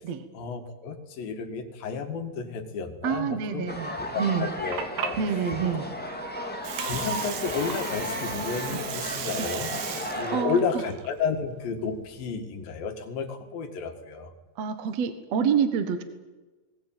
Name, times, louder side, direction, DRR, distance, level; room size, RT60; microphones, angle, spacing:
voice 1, 0.3-3.7 4.0-5.2 6.8-9.7 10.1-14.3, left 5 dB, 65° left, 5 dB, 3.6 m, -32 dB
voice 2, 3.0-4.5 5.2-5.9 9.4-9.5 10.3-10.6 14.6-16.0, right 7 dB, 60° right, 9 dB, 1.9 m, -27 dB
sound 1, 3.7-10.4, equal, 5° left, 1.4 m, -34 dB
Water, 4.4-12.3, right 9 dB, 85° right, 3.6 m, -37 dB
20.5 x 18.5 x 9.1 m, 1.2 s
omnidirectional pair, 4.6 m